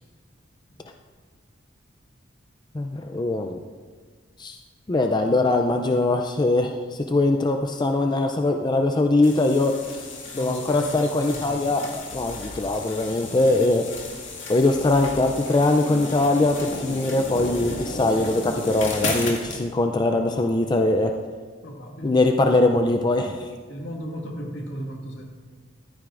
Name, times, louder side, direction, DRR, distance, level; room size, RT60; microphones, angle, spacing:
voice 1, 2.7-3.6 4.4-4.6 4.9-9.7 10.3-13.9 14.5-21.1 22.0-23.5, left 2 dB, 25° left, 4 dB, 0.4 m, -22 dB
sound 1, 9.2-19.6, left 2 dB, 85° left, 2.0 m, -34 dB
voice 2, 10.3-11.5 21.6-22.6 23.7-25.2, equal, 70° left, 0 dB, 2.0 m, -35 dB
14.5 x 12.5 x 2.5 m, 1.5 s
head